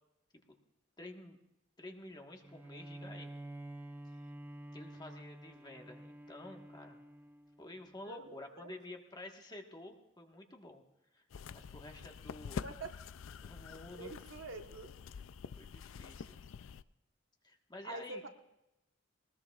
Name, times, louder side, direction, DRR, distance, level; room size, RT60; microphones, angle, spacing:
voice 1, 1.0-1.4 1.8-3.3 4.1-4.3 4.7-7.0 7.6-10.8 11.1-11.2 11.5-12.6 13.4-14.1 15.6-16.4 17.4-18.3, left 2 dB, 20° left, 3 dB, 1.4 m, -50 dB
Bowed string instrument, 2.4-7.9, right 1 dB, 10° right, 0.4 m, -49 dB
voice 2, 8.1-8.7 12.6-13.0 13.9-14.9 17.8-18.3, right 3 dB, 65° right, 4 dB, 1.2 m, -46 dB
sound 1, 11.3-16.8, left 6 dB, 70° left, 0.4 m, -47 dB
20.5 x 20.0 x 2.4 m, 0.89 s
head